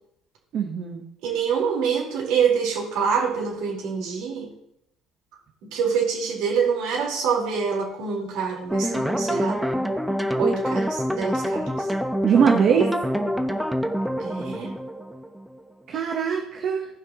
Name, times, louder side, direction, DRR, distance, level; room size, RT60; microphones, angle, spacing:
voice 1, 0.5-1.0 12.2-12.9 15.9-16.9, right 7 dB, 55° right, 2 dB, 1.3 m, -22 dB
voice 2, 1.2-4.5 5.7-9.6 10.4-11.9 14.2-14.7, right 6 dB, 80° right, -3 dB, 4.4 m, -25 dB
sound 1, 8.7-15.7, equal, 5° right, 1.0 m, -26 dB
17.0 x 5.8 x 3.1 m, 0.77 s
cardioid pair, 100°, 0 cm